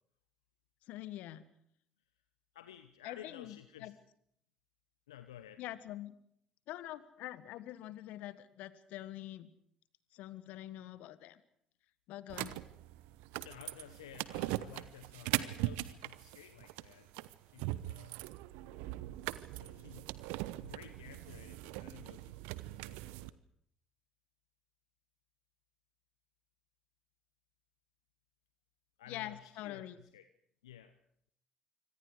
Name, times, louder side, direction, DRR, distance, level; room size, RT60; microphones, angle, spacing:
voice 1, 0.8-1.4 3.0-3.9 5.6-6.1 6.7-9.5 10.1-11.4 12.1-12.6 29.1-30.0, left 14 dB, 65° left, 15 dB, 1.5 m, -45 dB
voice 2, 2.5-3.9 5.1-5.6 13.4-18.2 18.7-19.0 19.6-20.1 20.6-22.6 22.8-23.4 29.0-30.3 30.6-31.0, left 11 dB, 85° left, 10 dB, 1.0 m, -54 dB
sound 1, 12.3-23.3, right 17 dB, 70° right, 0.9 m, -40 dB
26.5 x 25.0 x 4.9 m, 0.69 s
figure-of-eight pair, 50°, 3 cm